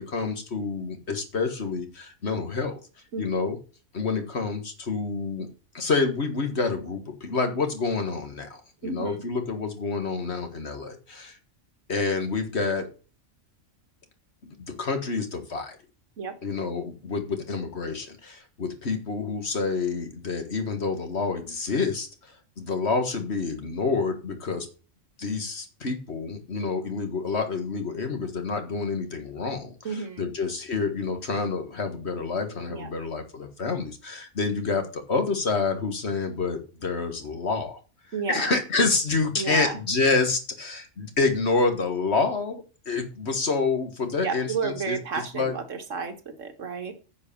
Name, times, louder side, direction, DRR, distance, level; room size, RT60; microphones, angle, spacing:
voice 1, 0.0-2.8 3.2-3.6 3.9-5.5 5.7-11.4 11.9-12.9 14.4-15.8 16.4-22.3 22.6-24.7 25.2-37.8 38.3-45.5, left 4 dB, 55° left, 6 dB, 1.9 m, -28 dB
voice 2, 3.1-3.5 8.8-9.2 16.2-16.3 29.8-30.3 32.7-32.9 38.1-38.5 39.3-39.8 44.2-46.9, right 5 dB, 75° right, 7 dB, 1.7 m, -32 dB
9.9 x 5.0 x 6.9 m, 0.35 s
omnidirectional pair, 1.3 m